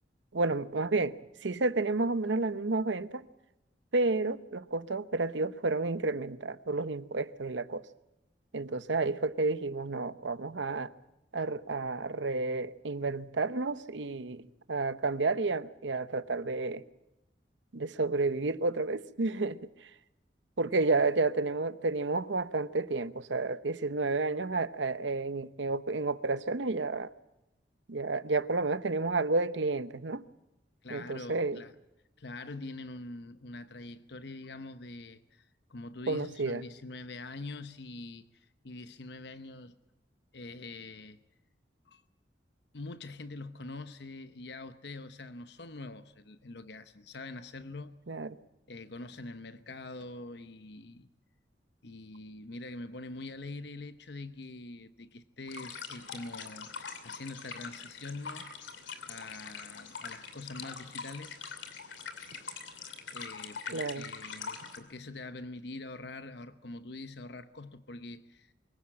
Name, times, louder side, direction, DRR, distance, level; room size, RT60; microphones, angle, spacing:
voice 1, 0.3-1.2 1.4-3.3 3.9-7.8 8.5-10.9 11.3-14.4 14.7-16.8 17.7-19.6 20.6-27.1 27.9-30.2 30.9-31.6 36.1-36.6 48.1-48.4 63.7-64.1, right 3 dB, 85° right, 0.9 m, -31 dB
voice 2, 30.8-31.7 32.2-39.8 40.3-41.2 41.9-42.0 42.7-48.0 48.7-51.1 51.8-58.5 59.1-61.4 63.1-68.5, left 2 dB, 70° left, 0.9 m, -44 dB
sound 1, 55.5-64.8, left 5 dB, 90° left, 2.7 m, -43 dB
24.0 x 16.5 x 8.7 m
head